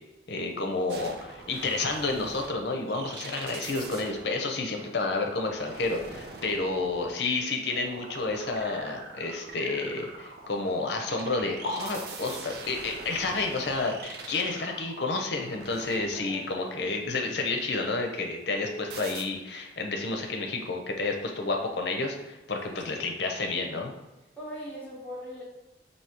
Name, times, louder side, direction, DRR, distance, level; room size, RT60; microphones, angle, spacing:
voice 1, 0.3-23.9, left 3 dB, 70° left, 2 dB, 0.6 m, -30 dB
sound 1, 0.9-16.6 18.9-19.2, right 3 dB, 60° right, 0.5 m, -44 dB
voice 2, 16.1-16.7 22.5-22.8 24.4-25.4, equal, 10° left, -7 dB, 0.9 m, -41 dB
4.9 x 2.7 x 2.9 m, 1.0 s
head